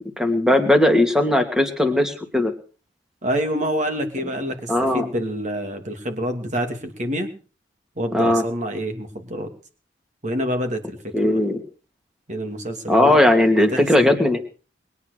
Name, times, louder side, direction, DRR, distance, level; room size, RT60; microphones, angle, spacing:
voice 1, 0.2-2.5 4.7-5.1 8.1-8.4 11.1-11.6 12.9-14.4, left 1 dB, 5° right, 6 dB, 2.5 m, -18 dB
voice 2, 3.2-7.3 8.0-9.5 10.2-11.0 11.2-11.4 12.3-13.2 13.6-14.2, equal, 45° right, 6 dB, 2.8 m, -27 dB
21.5 x 9.6 x 6.7 m, 0.40 s
head